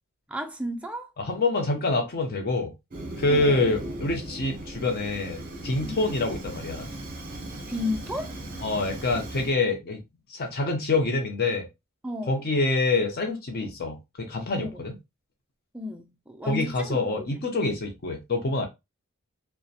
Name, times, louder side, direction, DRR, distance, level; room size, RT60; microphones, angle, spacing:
voice 1, 0.3-1.1 3.3-3.7 5.8-6.0 7.7-8.3 12.0-12.4 14.6-14.8 15.7-17.4, left 1 dB, 5° right, 0.3 m, -33 dB
voice 2, 1.2-2.7 3.2-6.9 8.6-10.0 10.3-11.7 12.3-14.9 16.5-18.7, left 2 dB, 45° left, 0.5 m, -26 dB
Fire, 2.9-9.5, right 1 dB, 40° right, 0.7 m, -37 dB
2.7 x 2.1 x 2.3 m
head